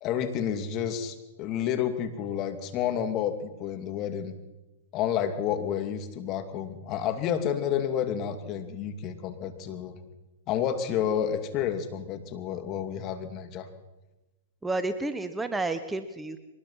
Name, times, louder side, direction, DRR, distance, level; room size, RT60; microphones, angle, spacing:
voice 1, 0.0-4.3 4.9-10.0 10.5-13.7, left 9 dB, 35° left, 8 dB, 2.6 m, -30 dB
voice 2, 14.6-16.4, right 2 dB, 10° right, 10 dB, 1.2 m, -30 dB
23.5 x 20.0 x 5.8 m, 1.1 s
hypercardioid pair, 120°, 0 cm